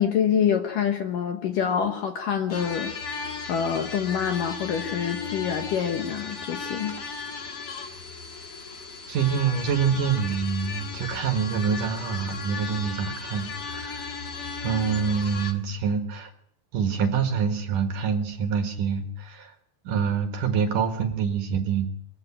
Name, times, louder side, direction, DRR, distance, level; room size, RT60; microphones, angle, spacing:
voice 1, 0.0-6.9, left 8 dB, 65° left, 6 dB, 2.3 m, -26 dB
sound 1, 2.5-15.5, left 5 dB, 45° left, 2.0 m, -36 dB
voice 2, 9.1-14.1 14.6-16.3 16.7-19.5 19.8-21.9, right 6 dB, 60° right, 6 dB, 2.6 m, -26 dB
22.0 x 14.5 x 8.7 m, 0.73 s
omnidirectional pair, 5.0 m